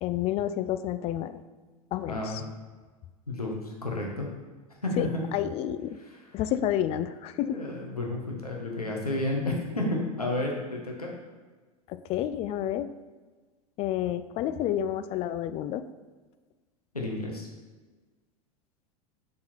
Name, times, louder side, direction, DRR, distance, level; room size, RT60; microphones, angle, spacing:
voice 1, 0.0-1.4 1.9-2.4 5.0-6.0 6.3-7.6 11.9-12.9 13.8-15.8, left 11 dB, 35° left, 12 dB, 0.4 m, -30 dB
voice 2, 2.1-2.5 3.3-4.3 4.8-5.1 6.0-6.2 7.4-11.1 16.9-17.5, left 2 dB, 85° left, -1 dB, 1.4 m, -31 dB
7.3 x 4.3 x 4.4 m, 1.3 s
figure-of-eight pair, 80°, 19 cm